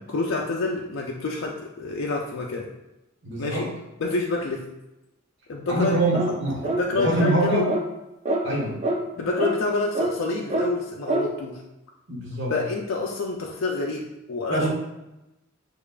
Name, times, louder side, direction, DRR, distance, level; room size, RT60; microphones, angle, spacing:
voice 1, 0.1-2.7 3.4-3.7 4.0-4.7 5.5-6.0 6.6-7.7 9.2-11.6 12.5-14.7, left 3 dB, 75° left, -1 dB, 0.4 m, -27 dB
voice 2, 3.2-3.7 5.7-6.6 6.9-7.7 8.4-8.8 9.1-9.3 12.1-12.6 14.5-14.7, right 2 dB, 65° right, -2 dB, 1.2 m, -25 dB
sound 1, 6.1-6.4 6.6-6.8 7.2-7.4 7.7-7.9 8.3-8.4 8.8-9.0 9.4-9.6 10.0-10.1 10.5-10.7 11.1-11.3, right 1 dB, 35° right, 0.4 m, -25 dB
6.8 x 2.4 x 2.3 m, 0.95 s
head